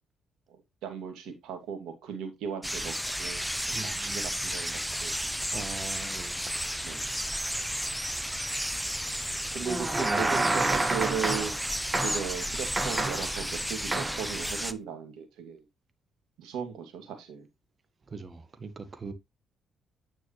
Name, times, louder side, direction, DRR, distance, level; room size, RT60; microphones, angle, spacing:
voice 1, 0.5-5.6 6.8-7.1 9.5-11.5 12.0-15.6 16.4-17.5, right 7 dB, 70° right, 2.4 m, -37 dB
sound 1, 2.6-14.7, equal, ahead, 0.8 m, -33 dB
voice 2, 3.7-4.2 5.5-6.4 18.1-19.1, right 4 dB, 40° right, 1.7 m, -41 dB
sound 2, 9.7-11.6 11.9-12.4 12.8-13.4 13.9-14.3, right 2 dB, 25° right, 1.9 m, -29 dB
9.4 x 6.2 x 3.2 m
hypercardioid pair, 45°, 0 cm